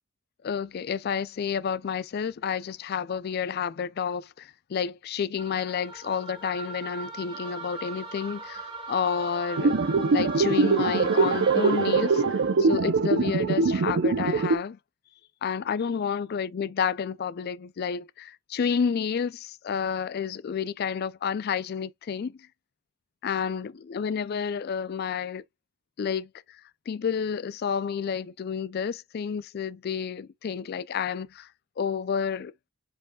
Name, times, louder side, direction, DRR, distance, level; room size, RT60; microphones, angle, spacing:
voice 1, 0.4-9.7 10.1-14.8 15.4-22.4 23.2-25.4 26.0-26.6 26.9-31.5 31.8-32.5, left 7 dB, 45° left, 0.3 m, -30 dB
sound 1, 5.4-12.6, right 3 dB, 25° right, 1.2 m, -39 dB
sound 2, 9.6-14.6, right 4 dB, 60° right, 0.5 m, -23 dB
5.0 x 4.7 x 2.2 m
head